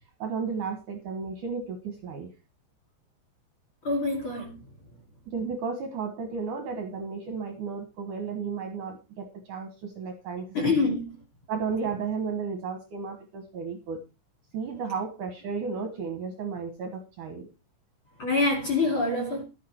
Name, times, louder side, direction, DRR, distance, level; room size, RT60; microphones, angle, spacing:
voice 1, 0.2-2.3 4.4-4.5 5.3-11.0 11.5-14.0 14.5-17.5, right 5 dB, 65° right, 2.3 m, -33 dB
voice 2, 3.8-4.6 10.5-11.1 18.2-19.4, left 3 dB, 40° left, 2.3 m, -25 dB
12.0 x 8.6 x 4.5 m
omnidirectional pair, 5.0 m